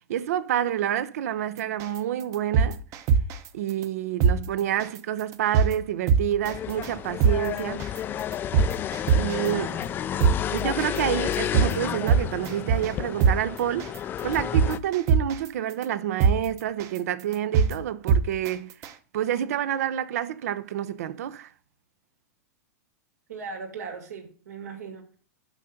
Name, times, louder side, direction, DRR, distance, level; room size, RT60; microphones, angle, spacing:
voice 1, 0.1-2.8 3.5-7.9 9.1-9.7 10.5-18.7 19.1-21.5, right 11 dB, 75° right, 0.7 m, -28 dB
sound 1, 1.8-2.0 2.3-3.5 3.8-3.9 4.2-4.4 4.8-5.0 5.3-5.7 6.1-6.5 6.8-6.9 7.2-7.4 7.8-8.0 8.3-9.5 9.8-9.9 10.2-10.4 10.8-11.0 11.3-11.7 12.1-12.9 13.2-13.4 13.8-14.0 14.3-15.5 15.8-15.9 16.2-16.4 16.8-17.0 17.3-17.7 18.1-18.5 18.8-18.9, right 6 dB, 40° right, 0.8 m, -20 dB
sound 2, 6.4-14.8, left 10 dB, 25° left, 0.4 m, -31 dB
voice 2, 9.4-10.0 23.3-25.2, right 5 dB, 90° right, 2.6 m, -39 dB
6.1 x 5.7 x 5.3 m
hypercardioid pair, 130°, 8 cm